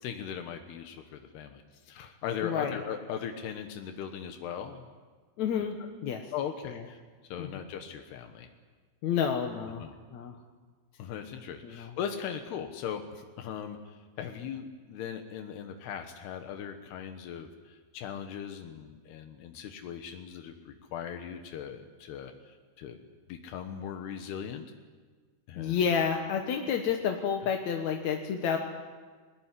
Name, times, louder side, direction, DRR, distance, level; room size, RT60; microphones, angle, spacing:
voice 1, 0.0-4.9 6.3-7.0 7.3-8.5 9.8-9.9 10.9-23.0 23.3-24.7 25.5-25.8, left 8 dB, 85° left, 6 dB, 3.3 m, -39 dB
voice 2, 2.4-2.8 5.4-5.8 6.0-6.3 6.7-6.8 7.4-7.5 9.0-10.4 11.6-12.0 25.6-28.6, left 7 dB, 60° left, 4 dB, 2.1 m, -30 dB
21.5 x 20.0 x 9.9 m, 1.4 s
omnidirectional pair, 4.6 m